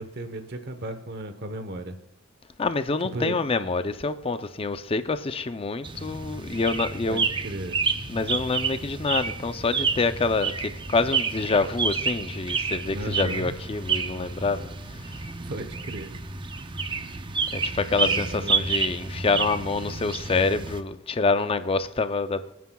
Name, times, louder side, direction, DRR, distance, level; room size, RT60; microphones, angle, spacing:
voice 1, 0.0-1.9 3.1-3.4 7.1-7.8 12.9-13.6 15.4-16.1 17.9-18.9, right 1 dB, 55° right, 0.9 m, -35 dB
voice 2, 2.6-7.3 8.1-15.1 17.5-22.5, left 3 dB, 30° left, 0.5 m, -27 dB
sound 1, 5.8-20.8, right 5 dB, 25° right, 0.6 m, -29 dB
26.0 x 9.4 x 2.3 m
head